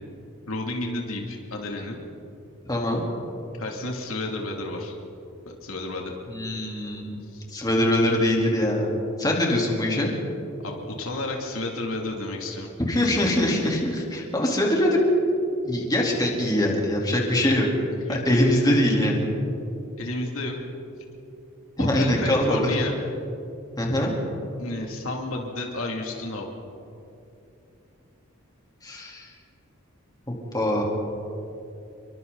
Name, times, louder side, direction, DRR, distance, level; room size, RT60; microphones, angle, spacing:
voice 1, 0.5-2.0 3.6-4.9 5.5-6.1 7.3-7.4 10.6-12.7 14.5-14.6 18.1-18.4 20.0-20.6 21.8-22.9 24.6-26.5, left 2 dB, 75° left, 0 dB, 2.8 m, -31 dB
voice 2, 2.7-3.0 6.3-7.2 7.5-10.1 12.9-15.0 15.6-17.7 18.1-19.3 21.8-22.7 23.8-24.1 28.8-29.3 30.5-30.8, left 1 dB, 20° left, -2 dB, 3.6 m, -23 dB
29.0 x 23.5 x 4.1 m, 2.7 s
head